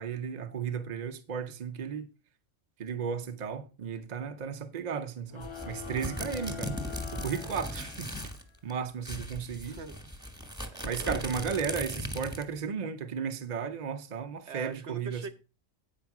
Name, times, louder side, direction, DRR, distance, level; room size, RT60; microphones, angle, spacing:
voice 1, 0.0-2.1 2.8-6.7 7.1-8.1 8.6-9.8 10.8-15.3, right 6 dB, 40° right, 0.9 m, -34 dB
sound 1, 5.3-8.3, left 8 dB, 50° left, 0.3 m, -44 dB
sound 2, 5.4-8.4 8.7-8.8 9.0-12.6, equal, 5° right, 1.4 m, -38 dB
voice 2, 9.7-10.1 10.7-11.3 14.5-15.3, right 5 dB, 65° right, 1.1 m, -42 dB
8.8 x 5.1 x 5.9 m
omnidirectional pair, 1.3 m